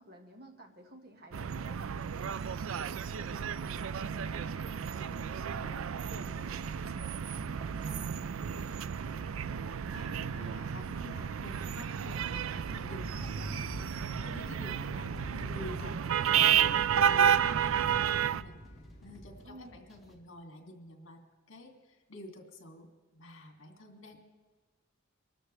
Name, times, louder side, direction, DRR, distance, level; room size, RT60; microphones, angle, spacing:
voice 1, 0.0-1.8 2.1-4.0 4.2-5.8 6.1-8.7 14.7-14.8 19.4-19.8, right 1 dB, 50° right, 3 dB, 1.7 m, -53 dB
sound 1, 1.3-18.4, right 8 dB, 85° right, 0.4 m, -32 dB
voice 2, 9.9-13.7 14.2-15.1 15.5-18.5 19.0-21.2 21.5-24.2, left 1 dB, 65° left, 2 dB, 2.5 m, -49 dB
sound 2, 12.1-20.1, equal, ahead, 1.4 m, -58 dB
sound 3, 12.8-19.4, equal, 35° left, 3.5 m, -46 dB
24.5 x 13.0 x 3.3 m, 1.4 s
head